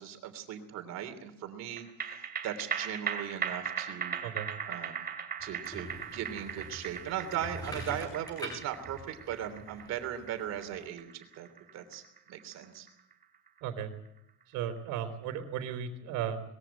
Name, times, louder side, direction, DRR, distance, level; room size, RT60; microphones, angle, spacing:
voice 1, 0.0-4.2 4.6-5.1 5.4-12.0 12.3-12.9, right 10 dB, 55° right, 8 dB, 3.3 m, -38 dB
sound 1, 1.8-14.4 14.8-14.9, right 7 dB, 30° right, 2.7 m, -39 dB
sound 2, 5.4-10.9, equal, 10° left, 7.4 m, -45 dB
voice 2, 13.6-13.9 14.5-16.4, right 8 dB, 70° right, 5 dB, 3.6 m, -35 dB
21.0 x 15.5 x 8.8 m, 0.81 s
cardioid pair, 155°, 32 cm